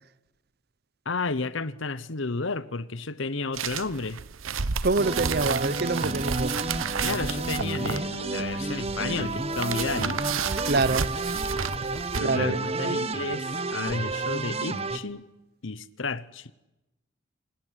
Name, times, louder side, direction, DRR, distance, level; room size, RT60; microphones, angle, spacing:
voice 1, 1.0-4.2 7.0-10.2 12.2-15.3 15.6-16.5, left 3 dB, 70° left, 1.0 m, -32 dB
sound 1, 3.5-12.2, right 6 dB, 80° right, 1.0 m, -32 dB
voice 2, 4.8-6.5 10.6-11.1 12.2-13.0, right 3 dB, 50° right, 0.8 m, -26 dB
sound 2, 5.0-15.0, right 3 dB, 30° right, 1.1 m, -31 dB
27.0 x 19.0 x 10.0 m
head